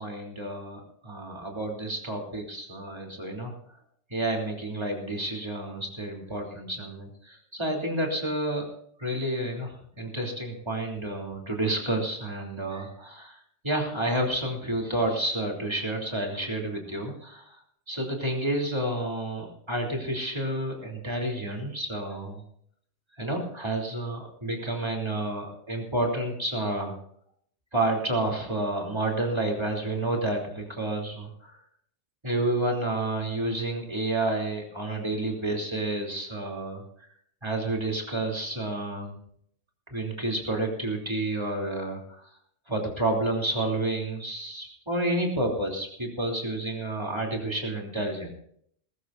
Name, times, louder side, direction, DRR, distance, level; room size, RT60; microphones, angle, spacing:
voice 1, 0.0-3.5 4.1-8.7 9.0-17.6 17.9-22.4 23.2-27.0 27.7-31.6 32.2-36.8 37.4-39.2 39.9-42.3 42.7-48.3, right 1 dB, 25° right, 0 dB, 3.3 m, -30 dB
20.5 x 14.0 x 2.6 m, 0.66 s
omnidirectional pair, 1.1 m